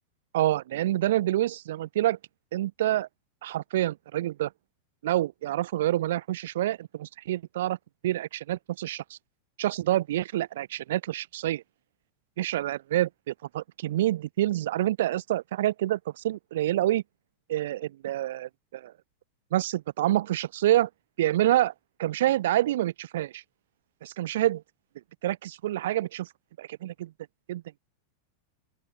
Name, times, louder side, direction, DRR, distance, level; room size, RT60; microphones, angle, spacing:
voice 1, 0.3-2.2 2.5-3.1 3.4-4.5 5.0-7.8 8.0-9.2 9.6-11.6 12.4-17.0 17.5-18.9 19.5-20.9 21.2-21.7 22.0-23.4 24.0-24.6 25.2-26.3 26.6-27.1 27.5-27.8, right 14 dB, 55° right, 0.9 m, -27 dB
open air
figure-of-eight pair, 90°, 0 cm